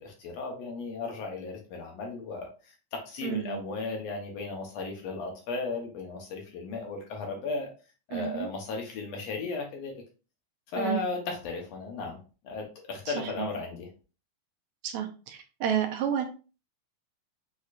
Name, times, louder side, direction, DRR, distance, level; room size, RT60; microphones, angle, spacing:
voice 1, 0.0-2.7 3.1-7.7 8.1-9.9 10.7-12.2 12.4-13.9, left 3 dB, 70° left, 1 dB, 1.9 m, -35 dB
voice 2, 3.2-3.6 8.1-8.5 10.8-11.1 13.1-13.5 14.8-16.3, right 9 dB, 80° right, 4 dB, 2.0 m, -31 dB
6.5 x 3.0 x 2.4 m, 0.34 s
omnidirectional pair, 3.4 m